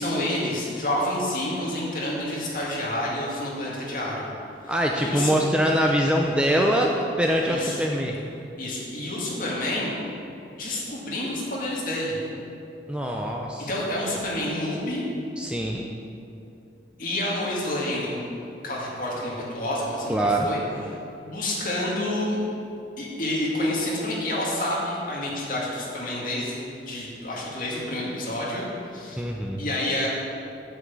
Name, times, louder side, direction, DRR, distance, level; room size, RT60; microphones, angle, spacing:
voice 1, 0.0-4.3 4.6-5.4 7.4-7.8 8.6-9.9 10.5-12.2 13.7-15.1 17.0-18.2 18.6-20.6 20.9-22.4 23.0-26.6 26.9-28.6 28.9-29.2 29.6-30.1, left 1 dB, 45° left, -5 dB, 2.2 m, -29 dB
voice 2, 4.7-8.2 12.9-13.7 15.4-15.9 20.1-20.5 29.2-29.6, equal, 5° right, 0 dB, 0.4 m, -23 dB
8.1 x 5.9 x 7.4 m, 2.7 s
head